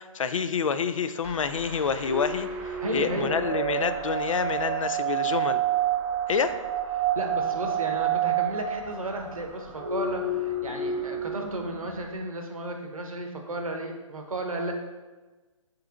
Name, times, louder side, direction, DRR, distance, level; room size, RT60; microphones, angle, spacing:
voice 1, 0.0-2.5 2.9-5.6 6.3-6.6, left 6 dB, 70° left, 12 dB, 0.4 m, -27 dB
sound 1, 1.2-12.2, right 2 dB, 5° right, 0.4 m, -46 dB
sound 2, 2.1-11.9, right 7 dB, 25° right, 0.9 m, -29 dB
voice 2, 2.8-3.3 6.9-14.7, right 1 dB, 80° right, 3 dB, 0.9 m, -34 dB
4.6 x 3.1 x 3.6 m, 1.3 s
figure-of-eight pair, 130°, 18 cm